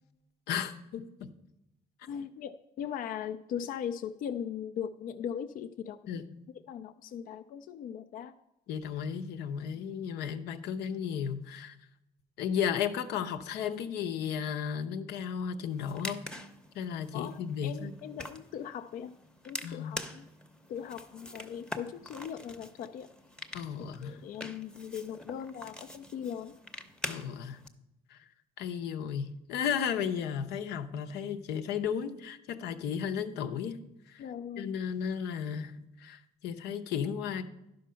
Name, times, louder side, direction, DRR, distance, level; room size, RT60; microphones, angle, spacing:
voice 1, 0.5-1.3 6.1-6.3 8.7-11.8 12.4-16.2 16.7-18.0 19.6-20.0 23.5-24.2 27.1-27.6 28.1-28.2 28.6-34.3 34.6-37.4, left 8 dB, 85° left, 7 dB, 0.8 m, -34 dB
voice 2, 2.1-6.0 6.7-8.3 17.1-19.1 19.4-20.2 20.7-23.1 24.0-26.6 34.2-34.8, left 8 dB, 55° left, 8 dB, 0.4 m, -39 dB
sound 1, 15.7-27.7, left 1 dB, 5° left, 0.7 m, -45 dB
11.5 x 5.2 x 5.6 m, 0.88 s
cardioid pair, 110°, 17 cm